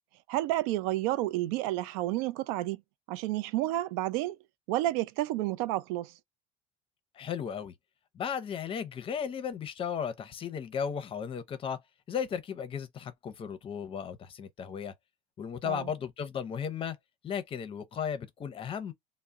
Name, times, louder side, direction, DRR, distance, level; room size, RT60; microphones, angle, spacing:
voice 1, 0.3-2.8 3.1-4.4 4.7-6.1 15.6-15.9, right 16 dB, 80° right, 0.4 m, -30 dB
voice 2, 7.1-7.7 8.1-11.8 12.1-14.9 15.4-17.0 17.2-18.9, left 7 dB, 30° left, 0.6 m, -35 dB
2.3 x 2.0 x 3.8 m
supercardioid pair, 115°, 17 cm